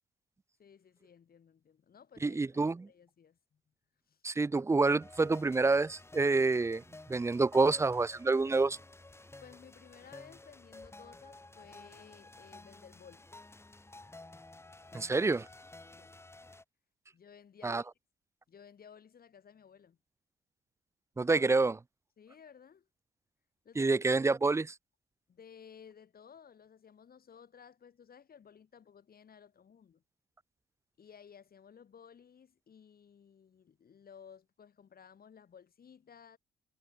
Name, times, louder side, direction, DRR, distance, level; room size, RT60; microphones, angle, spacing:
voice 1, 0.6-3.6 4.1-4.2 9.4-13.3 16.0-16.2 17.1-17.9 18.5-20.0 22.2-22.9 23.6-24.3 25.3-30.0 31.0-36.4, left 7 dB, 50° left, 4.3 m, -56 dB
voice 2, 2.2-2.9 4.2-6.8 7.1-8.8 14.9-15.5 17.6-17.8 21.2-21.8 23.8-24.7, right 3 dB, 15° right, 0.4 m, -27 dB
sound 1, 5.0-16.6, left 2 dB, 10° left, 1.4 m, -52 dB
cardioid pair, 90°, 20 cm